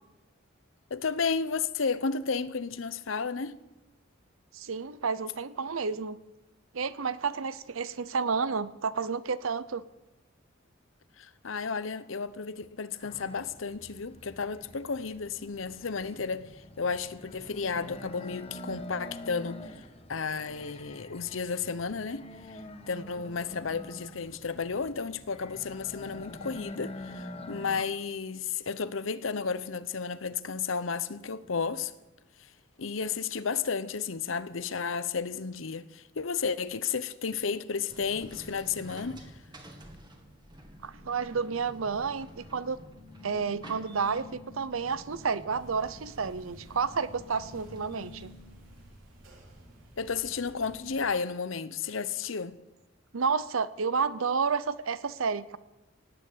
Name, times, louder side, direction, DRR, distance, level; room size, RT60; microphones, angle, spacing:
voice 1, 0.9-3.6 11.2-19.7 20.1-22.6 22.9-31.9 32.8-39.3 50.0-52.6, left 5 dB, 75° left, 0.8 m, -33 dB
voice 2, 4.5-6.2 6.7-9.8 40.8-42.8 43.2-48.3 53.1-55.6, right 5 dB, 85° right, 0.7 m, -30 dB
sound 1, 13.0-27.8, left 1 dB, 30° left, 1.1 m, -45 dB
sound 2, 37.9-49.0, left 1 dB, 20° right, 2.1 m, -49 dB
sound 3, 45.5-51.1, right 1 dB, 65° right, 3.9 m, -54 dB
17.5 x 9.1 x 8.5 m
head